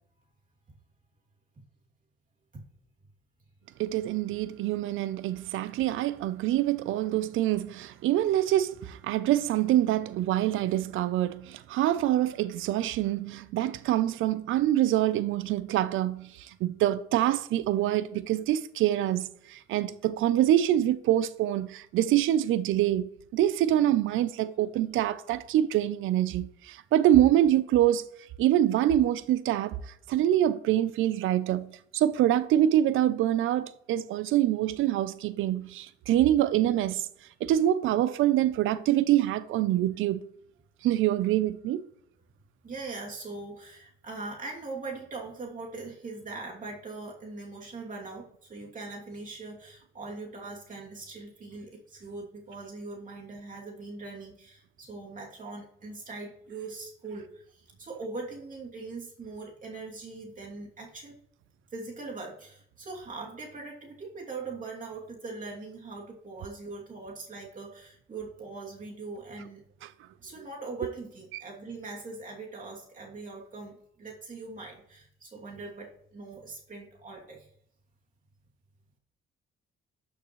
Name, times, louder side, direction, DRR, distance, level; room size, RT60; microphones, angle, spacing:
voice 1, 3.8-28.1 28.4-29.8 30.1-37.1 37.4-40.3 40.8-41.8 71.3-71.4, right 12 dB, 85° right, 0.6 m, -25 dB
voice 2, 42.6-61.2 61.7-69.6 70.2-77.5, right 3 dB, 40° right, 2.8 m, -41 dB
12.5 x 6.6 x 3.2 m
cardioid pair, 90°, 20 cm